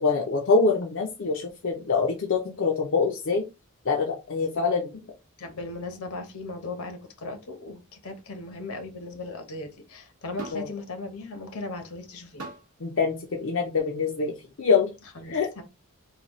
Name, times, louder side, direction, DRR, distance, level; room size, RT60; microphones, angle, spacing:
voice 1, 0.0-3.4 3.9-4.9 10.5-10.7 12.8-14.9 15.3-15.5, left 4 dB, 60° left, 0.5 m, -25 dB
voice 2, 5.4-12.5 15.1-15.6, left 2 dB, 75° left, 0.9 m, -37 dB
sound 1, 10.4-10.7 12.4-12.7 13.8-13.9, right 3 dB, 90° right, 0.9 m, -40 dB
4.0 x 2.2 x 3.0 m
head